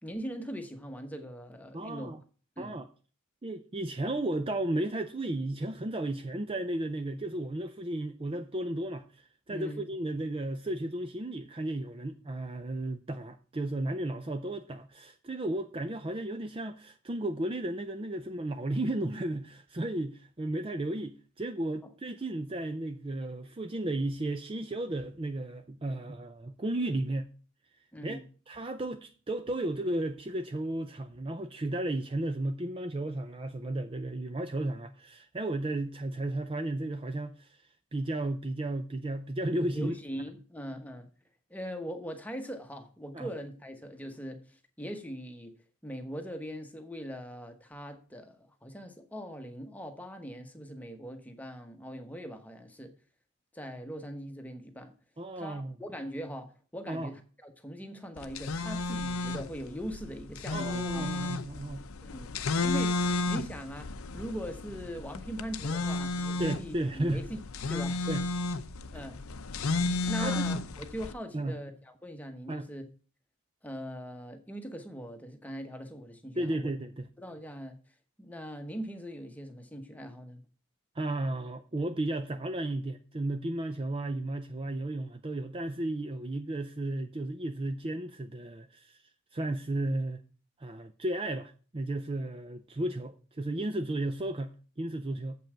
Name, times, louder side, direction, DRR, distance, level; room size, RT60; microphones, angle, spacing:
voice 1, 0.0-2.1 2.6-2.8 9.5-9.9 27.9-28.2 39.7-41.1 41.5-45.5 45.8-52.9 53.5-54.9 55.4-61.3 62.0-67.4 67.7-68.0 68.9-69.2 70.1-72.8 73.6-76.7 77.2-77.8 78.2-80.4, equal, 5° left, 1.0 m, -41 dB
voice 2, 1.7-2.2 2.6-2.9 3.4-27.3 28.0-28.2 28.5-37.6 37.9-39.9 43.1-43.3 55.2-55.8 56.9-57.1 60.5-61.8 66.4-67.2 68.1-68.3 70.2-70.4 71.3-71.6 72.5-72.7 76.4-77.1 81.0-89.0 89.3-90.2 90.6-95.4, right 1 dB, 25° right, 0.5 m, -34 dB
sound 1, 58.2-71.1, left 3 dB, 75° left, 0.7 m, -33 dB
7.6 x 5.5 x 7.3 m
head